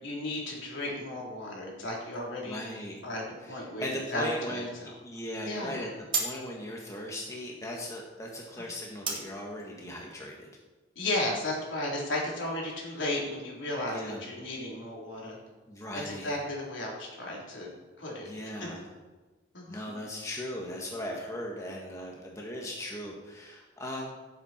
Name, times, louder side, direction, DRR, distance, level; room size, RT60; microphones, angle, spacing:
voice 1, 0.0-2.6 3.0-4.7 5.4-5.9 11.0-15.4 15.9-17.7 18.0-18.3 18.6-18.7 19.5-20.0, left 1 dB, 75° left, -3 dB, 3.6 m, -34 dB
voice 2, 2.5-3.0 3.4-5.9 6.2-10.5 13.9-14.2 15.7-16.4 18.2-18.9 19.7-24.2, left 1 dB, 15° left, -1 dB, 1.5 m, -38 dB
sound 1, 3.0-11.5, right 4 dB, 25° right, 2.3 m, -41 dB
16.5 x 7.6 x 4.4 m, 1.2 s
head